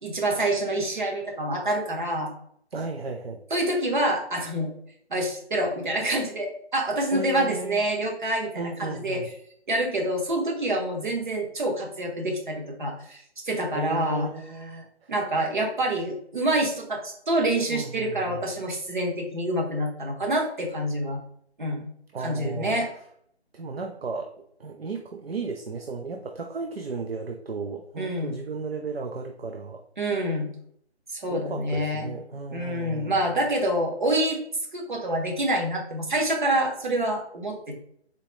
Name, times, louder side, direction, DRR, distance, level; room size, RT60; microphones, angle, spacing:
voice 1, 0.0-2.3 3.5-4.7 5.1-8.5 8.8-9.2 9.7-14.3 15.1-21.2 21.6-21.8 22.2-22.9 28.0-28.3 30.0-30.5 31.1-32.1 32.5-34.4 34.7-37.7, right 1 dB, 45° right, 1 dB, 1.2 m, -27 dB
voice 2, 2.7-3.4 7.1-7.8 8.5-9.3 13.7-15.1 17.7-18.4 22.1-22.8 23.5-24.3 24.6-29.8 31.3-33.2, right 4 dB, 65° right, 4 dB, 0.6 m, -34 dB
4.2 x 3.1 x 3.1 m, 0.68 s
figure-of-eight pair, 160°, 33 cm